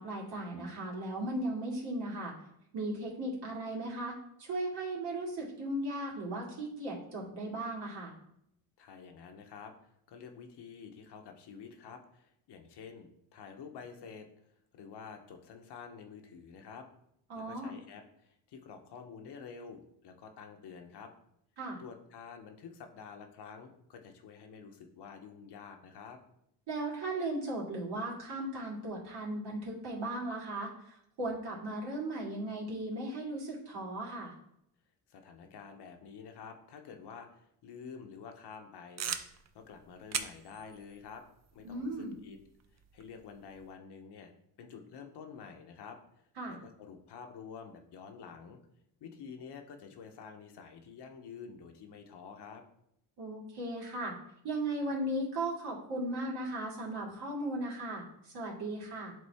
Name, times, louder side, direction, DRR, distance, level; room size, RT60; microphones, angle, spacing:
voice 1, 0.0-2.3 2.7-8.1 17.3-17.7 21.6-21.8 26.7-34.3 41.6-42.1 46.4-46.6 53.2-54.1 54.4-59.2, right 1 dB, 65° right, -4 dB, 2.4 m, -37 dB
voice 2, 8.8-9.7 10.1-14.3 14.7-16.9 17.3-21.1 21.8-26.2 35.1-39.2 39.5-41.2 41.5-42.4 42.9-44.3 44.6-46.0 46.5-48.6 49.0-52.6, left 6 dB, 65° left, 5 dB, 1.0 m, -49 dB
sound 1, 39.0-43.7, right 7 dB, 40° right, 0.6 m, -43 dB
8.3 x 3.6 x 3.5 m, 0.76 s
cardioid pair, 85°, 43 cm